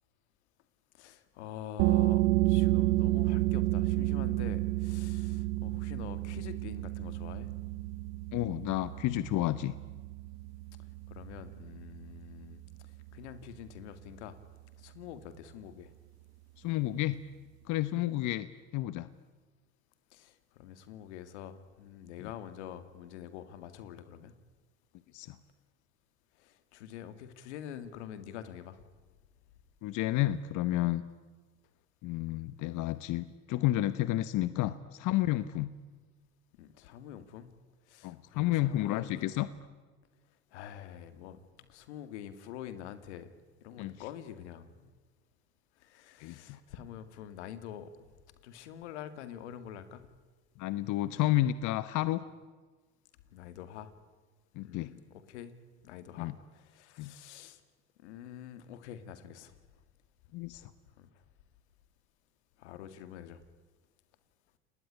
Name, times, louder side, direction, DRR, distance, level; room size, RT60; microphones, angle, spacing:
voice 1, 0.9-7.5 11.1-14.4 14.8-15.9 20.1-24.3 26.4-28.9 36.6-37.5 37.9-39.5 40.5-43.3 43.6-44.9 45.8-47.9 48.4-50.1 53.3-53.9 54.6-55.5 55.8-57.6 58.0-59.6 60.5-60.6 61.0-61.1 62.6-63.4, left 10 dB, 90° left, 11 dB, 2.1 m, -46 dB
sound 1, 1.8-13.2, right 18 dB, 80° right, 1.0 m, -31 dB
voice 2, 8.3-9.7 16.6-17.2 17.7-18.5 18.7-19.1 22.2-22.3 25.1-25.4 29.8-31.0 32.0-35.7 38.0-39.5 43.8-43.9 46.2-46.6 50.6-52.2 54.6-54.9 56.2-56.3 57.0-57.1 60.3-60.7, left 15 dB, 60° left, 14 dB, 1.1 m, -31 dB
29.5 x 19.5 x 10.0 m, 1.4 s
supercardioid pair, 90°, 33 cm